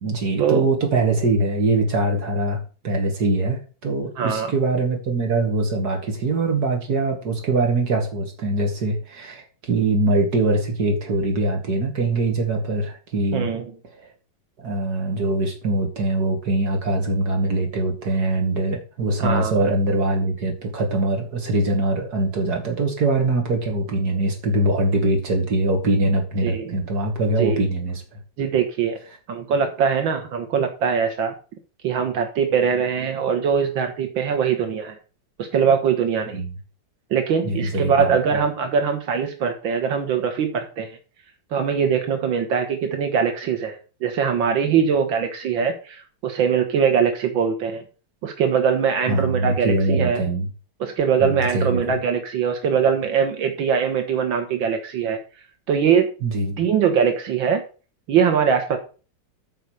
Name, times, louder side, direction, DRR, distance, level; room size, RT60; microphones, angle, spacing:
voice 1, 0.0-13.5 14.6-28.0 36.3-36.5 37.4-38.2 49.1-50.5 51.2-51.9 56.2-56.6, right 2 dB, 55° right, 2 dB, 2.8 m, -22 dB
voice 2, 4.2-4.5 13.3-13.7 19.2-19.6 26.4-26.7 27.4-27.6 28.4-29.0 29.3-31.3 31.8-35.0 35.4-36.4 37.1-41.0 41.5-47.8 48.2-50.3 50.8-55.2 55.7-56.1 56.6-57.6 58.1-58.8, right 7 dB, 85° right, 6 dB, 2.1 m, -22 dB
9.2 x 5.3 x 6.5 m, 0.35 s
omnidirectional pair, 2.1 m